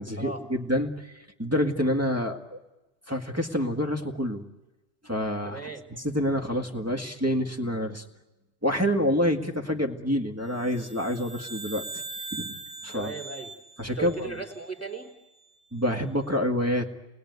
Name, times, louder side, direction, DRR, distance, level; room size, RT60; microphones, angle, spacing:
voice 1, 0.0-2.6 3.1-4.4 5.0-8.0 8.6-11.8 12.3-12.6 12.8-13.1 13.8-14.4 15.7-16.9, equal, 15° right, 4 dB, 1.8 m, -27 dB
voice 2, 5.4-5.8 12.9-13.5 14.0-15.1, right 4 dB, 15° left, 2 dB, 3.0 m, -36 dB
sound 1, 10.6-15.1, right 3 dB, 60° right, 1.6 m, -41 dB
28.5 x 20.5 x 9.4 m, 1.1 s
omnidirectional pair, 1.1 m